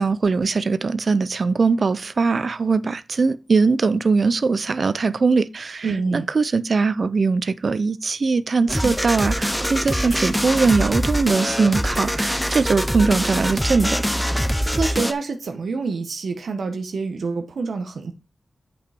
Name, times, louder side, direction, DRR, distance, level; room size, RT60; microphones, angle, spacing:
voice 1, 0.0-14.0, right 4 dB, 55° right, 0.6 m, -21 dB
voice 2, 5.8-6.3 14.7-18.1, right 4 dB, 90° right, 1.1 m, -27 dB
sound 1, 8.7-15.1, equal, 5° left, 0.7 m, -23 dB
8.0 x 5.5 x 4.3 m
wide cardioid pair, 105°, 0 cm